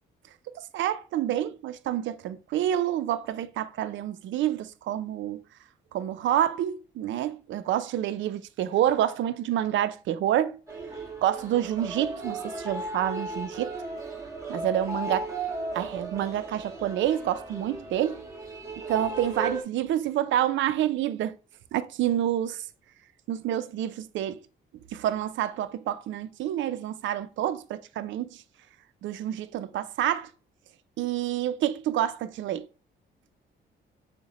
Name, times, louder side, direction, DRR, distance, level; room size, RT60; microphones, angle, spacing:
voice 1, 0.7-5.4 5.9-10.6 11.2-13.7 14.5-15.2 15.7-18.2 18.9-21.4 21.7-22.6 23.3-24.4 24.9-28.4 29.0-30.3 31.0-32.7, right 11 dB, 70° right, 0.4 m, -28 dB
sound 1, 10.7-19.6, right 2 dB, 15° right, 1.2 m, -36 dB
6.4 x 2.1 x 2.9 m
cardioid pair, 90°, 20 cm